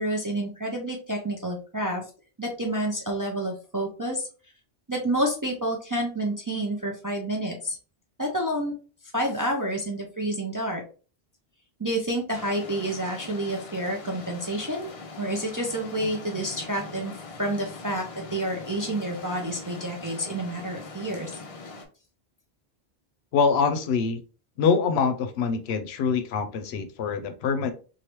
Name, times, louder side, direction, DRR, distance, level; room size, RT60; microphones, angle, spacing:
voice 1, 0.0-2.0 2.4-4.3 4.9-7.8 8.2-8.7 9.1-10.8 11.8-21.3, right 1 dB, 30° right, 0 dB, 0.4 m, -29 dB
sound 1, 12.3-21.9, left 3 dB, 45° left, 0.5 m, -42 dB
voice 2, 23.3-24.2 24.6-27.7, left 5 dB, 80° left, 9 dB, 0.8 m, -24 dB
3.1 x 2.5 x 2.9 m, 0.36 s
omnidirectional pair, 1.1 m